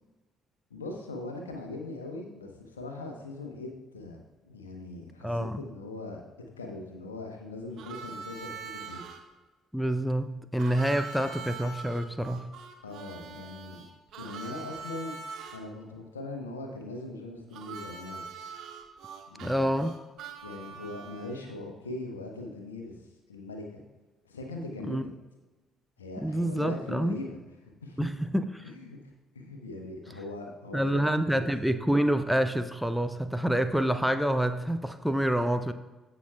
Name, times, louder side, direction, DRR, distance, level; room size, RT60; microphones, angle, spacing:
voice 1, 0.7-6.2 6.6-9.0 12.8-13.8 14.2-15.1 15.5-18.2 19.3-19.6 20.4-23.0 23.3-23.8 24.2-25.1 26.0-28.1 28.6-29.0 29.3-31.5, left 2 dB, 80° left, 2 dB, 0.9 m, -40 dB
voice 2, 5.2-5.6 9.7-12.5 19.4-19.9 24.9-25.0 26.2-27.2 28.0-28.7 30.7-35.7, right 1 dB, ahead, 9 dB, 0.5 m, -27 dB
Harmonica, 7.8-9.2 10.6-15.6 17.5-21.5, right 5 dB, 55° right, 0.8 m, -43 dB
15.5 x 6.1 x 2.3 m, 1.2 s
figure-of-eight pair, 45°, 0 cm